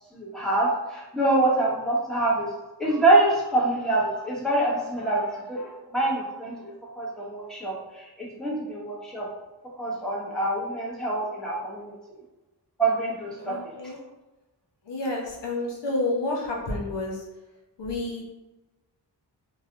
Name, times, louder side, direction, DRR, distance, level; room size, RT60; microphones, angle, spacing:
voice 1, 0.1-2.5 2.8-6.5 7.0-9.3 9.8-11.9 12.8-13.7, right 2 dB, ahead, -7 dB, 1.2 m, -25 dB
voice 2, 13.4-14.0 14.9-17.2 17.8-18.2, left 2 dB, 75° left, -2 dB, 0.9 m, -29 dB
3.2 x 2.9 x 2.5 m, 1.0 s
wide cardioid pair, 70°, 42 cm